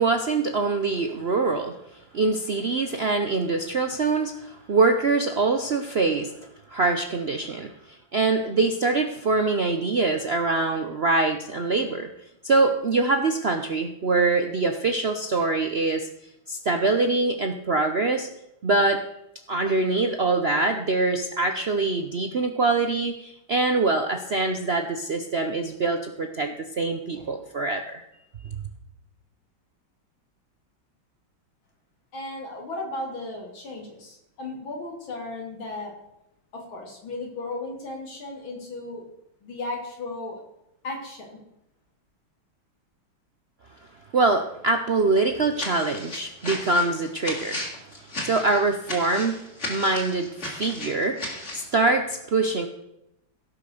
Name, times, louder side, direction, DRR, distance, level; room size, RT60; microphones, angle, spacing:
voice 1, 0.0-6.3 6.7-12.1 12.4-16.1 16.5-18.3 18.6-19.0 19.5-28.0 44.1-47.6 48.0-52.7, right 3 dB, 85° right, 6 dB, 0.5 m, -24 dB
voice 2, 32.1-35.9 36.5-39.0 39.4-40.4 40.8-41.4, left 2 dB, 70° left, -1 dB, 3.9 m, -35 dB
sound 1, 45.5-51.7, left 1 dB, 35° left, 3.1 m, -35 dB
16.5 x 6.0 x 6.7 m, 0.85 s
omnidirectional pair, 2.3 m